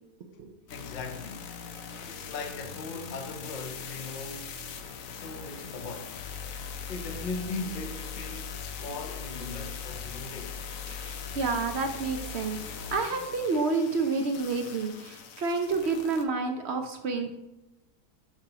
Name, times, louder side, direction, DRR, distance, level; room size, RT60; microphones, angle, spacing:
sound 1, 0.7-16.2, left 6 dB, 65° left, 1.0 m, -40 dB
voice 1, 0.7-1.5 2.0-4.6 5.1-6.2 6.9-10.6, left 3 dB, 45° left, 0.6 m, -39 dB
voice 2, 11.0-12.6 12.9-17.3, right 4 dB, 60° right, 0.7 m, -29 dB
6.6 x 6.0 x 2.9 m
omnidirectional pair, 1.6 m